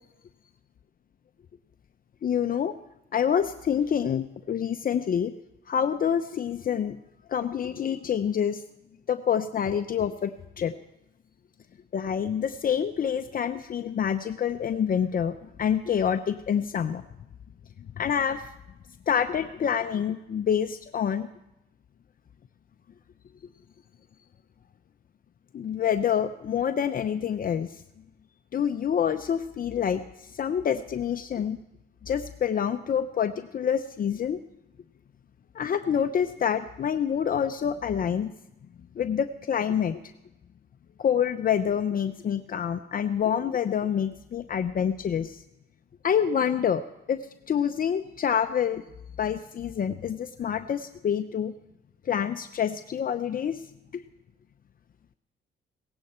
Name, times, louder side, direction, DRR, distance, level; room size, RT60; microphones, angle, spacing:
voice 1, 2.2-2.7 3.1-5.3 5.7-7.0 7.3-8.6 9.1-10.3 10.6-10.8 11.9-17.0 18.0-18.4 19.1-21.3 25.5-27.7 28.5-30.0 30.3-31.6 32.1-34.4 35.5-38.3 39.0-40.0 41.0-45.4 46.0-46.8 47.1-47.2 47.5-48.8 49.2-51.5 52.1-53.6 53.9-54.0, left 8 dB, 45° left, 9 dB, 0.7 m, -27 dB
18.0 x 15.5 x 4.4 m, 0.91 s
cardioid pair, 90°, 20 cm